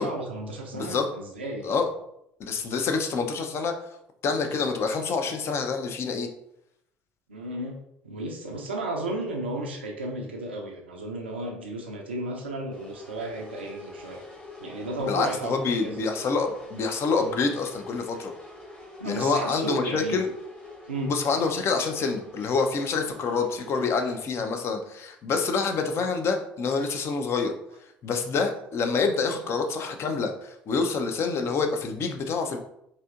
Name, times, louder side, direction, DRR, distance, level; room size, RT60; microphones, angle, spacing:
voice 1, 0.0-1.7 7.3-14.2 14.6-16.0 19.0-20.2 20.9-21.2, right 1 dB, 90° right, 1 dB, 0.4 m, -34 dB
voice 2, 0.7-1.1 1.6-1.8 2.4-3.8 4.2-6.3 15.1-18.3 19.0-20.3 21.1-27.5 28.0-32.6, left 4 dB, 50° left, 5 dB, 0.5 m, -27 dB
sound 1, 12.7-24.2, left 3 dB, 20° left, 1.0 m, -45 dB
4.1 x 2.7 x 2.4 m, 0.78 s
hypercardioid pair, 60°, 6 cm